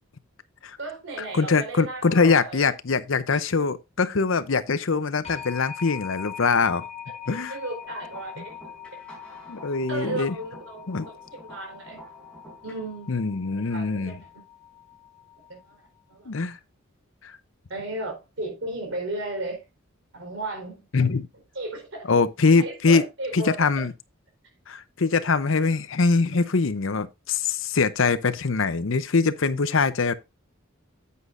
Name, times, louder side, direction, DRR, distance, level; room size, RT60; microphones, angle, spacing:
voice 1, 0.8-2.7 3.3-3.4 7.2-8.6 9.9-12.0 12.6-13.2 13.5-14.3 15.5-16.3 17.7-19.7 20.1-20.8 21.5-22.1 22.6-23.9, right 2 dB, 65° right, 4.0 m, -35 dB
voice 2, 1.3-6.9 7.3-7.5 9.5-10.3 10.9-11.1 13.1-14.1 16.3-16.6 17.2-17.3 20.9-21.3 22.1-23.0 23.3-23.9 24.7-30.1, left 4 dB, 65° left, 0.7 m, -23 dB
sound 1, 5.2-15.9, left 8 dB, 30° left, 1.3 m, -43 dB
sound 2, 7.8-12.8, right 1 dB, 5° left, 4.5 m, -48 dB
9.3 x 8.5 x 2.6 m
head